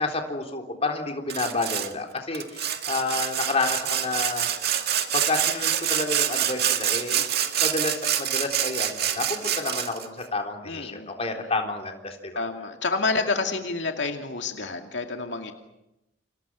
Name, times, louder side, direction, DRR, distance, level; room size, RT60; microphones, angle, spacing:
voice 1, 0.0-4.5 5.1-7.3 7.6-12.4, left 3 dB, 35° left, 3 dB, 3.7 m, -30 dB
Sawing, 1.3-1.9 2.3-10.1, right 10 dB, 55° right, 2.1 m, -26 dB
voice 2, 10.6-11.1 12.4-15.5, left 3 dB, 70° left, 4 dB, 2.4 m, -28 dB
30.0 x 27.0 x 6.3 m, 0.89 s
head